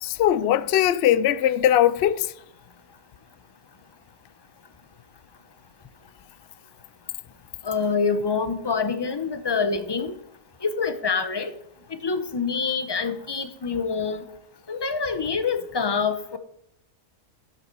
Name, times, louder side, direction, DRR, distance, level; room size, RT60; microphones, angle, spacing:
voice 1, 0.0-2.3, left 11 dB, 70° left, 0.6 m, -20 dB
voice 2, 7.6-10.2 10.6-11.5 11.9-14.2 14.7-16.4, left 5 dB, 25° left, 0.5 m, -26 dB
12.0 x 8.0 x 4.6 m
omnidirectional pair, 1.6 m